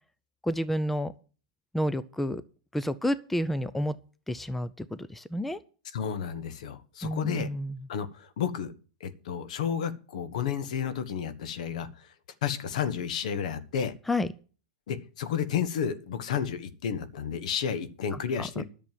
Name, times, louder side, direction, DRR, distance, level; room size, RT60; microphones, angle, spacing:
voice 1, 0.4-1.1 1.7-2.4 2.7-4.0 4.3-5.6 7.0-7.8 14.1-14.3 18.1-18.5, equal, 5° left, 15 dB, 0.5 m, -30 dB
voice 2, 5.9-7.5 7.9-8.7 9.0-11.9 12.4-13.9 14.9-18.6, left 8 dB, 70° left, 12 dB, 1.4 m, -31 dB
11.0 x 7.0 x 7.4 m, 0.39 s
supercardioid pair, 140°, 4 cm